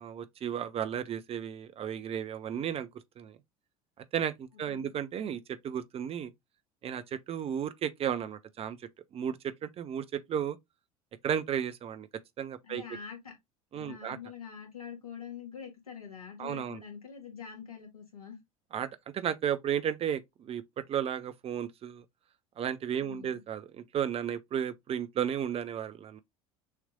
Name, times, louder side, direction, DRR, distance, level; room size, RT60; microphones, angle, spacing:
voice 1, 0.0-2.9 3.2-3.4 4.1-6.3 6.8-8.8 9.1-10.6 11.2-12.1 12.4-12.8 13.7-14.2 16.4-16.8 18.7-18.9 19.1-20.6 20.9-22.0 22.6-26.2, right 9 dB, 35° right, 0.7 m, -33 dB
voice 2, 12.6-13.3 13.7-18.4 23.0-23.4, left 7 dB, 80° left, 1.9 m, -45 dB
6.4 x 3.2 x 2.4 m
figure-of-eight pair, 70°, 18 cm